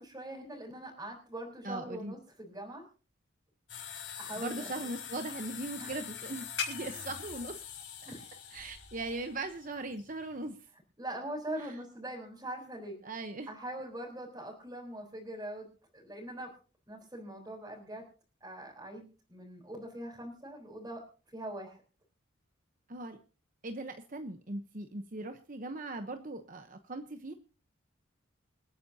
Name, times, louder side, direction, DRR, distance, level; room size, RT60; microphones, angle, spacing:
voice 1, 0.0-2.8 3.8-4.7 5.8-5.9 6.9-7.0 8.0-8.4 11.0-13.0 13.5-15.7 15.9-16.5 16.9-18.0 18.4-21.0 21.3-21.8, right 1 dB, 15° right, -5 dB, 4.0 m, -42 dB
voice 2, 1.6-2.2 4.4-7.6 8.5-10.6 11.6-11.7 13.0-13.5 22.9-23.2 23.6-27.3, right 2 dB, 40° right, 7 dB, 0.9 m, -39 dB
sound 1, 3.7-10.5, left 7 dB, 65° left, 5.2 m, -43 dB
27.5 x 9.5 x 2.8 m, 0.37 s
head